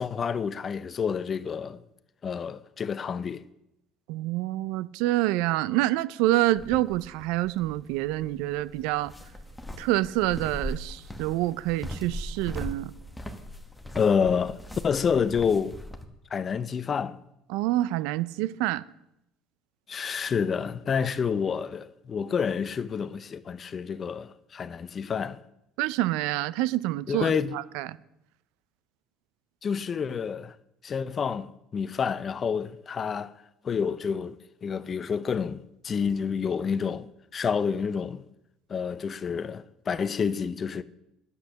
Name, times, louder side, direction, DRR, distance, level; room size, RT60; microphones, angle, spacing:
voice 1, 0.0-1.8 2.2-3.4 13.9-14.6 14.8-15.8 16.3-17.2 19.9-25.4 27.1-27.6 29.6-30.5 30.8-31.5 31.7-33.3 33.6-38.2 38.7-40.8, left 6 dB, 35° left, 0.5 m, -28 dB
voice 2, 4.1-9.1 9.8-12.9 17.5-18.8 25.8-27.9, right 16 dB, 85° right, 0.4 m, -27 dB
sound 1, 6.5-16.0, equal, 5° left, 1.1 m, -40 dB
10.5 x 8.1 x 6.4 m
cardioid pair, 120°, 0 cm